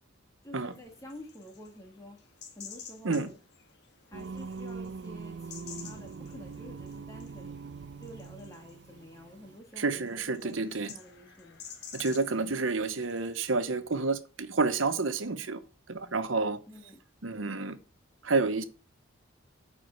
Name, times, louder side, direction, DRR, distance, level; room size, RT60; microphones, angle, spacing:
voice 1, 0.4-2.2 2.6-3.3 4.1-7.6 8.0-11.6 16.7-17.0, left 1 dB, 15° left, 1.9 m, -49 dB
sound 1, 0.6-13.6, left 7 dB, 55° left, 1.5 m, -51 dB
Singing, 4.1-9.6, right 4 dB, 60° right, 0.4 m, -42 dB
voice 2, 9.8-10.9 11.9-15.6 15.9-16.6 17.2-17.8 18.2-18.6, right 3 dB, 80° right, 1.0 m, -29 dB
8.9 x 5.0 x 6.4 m
head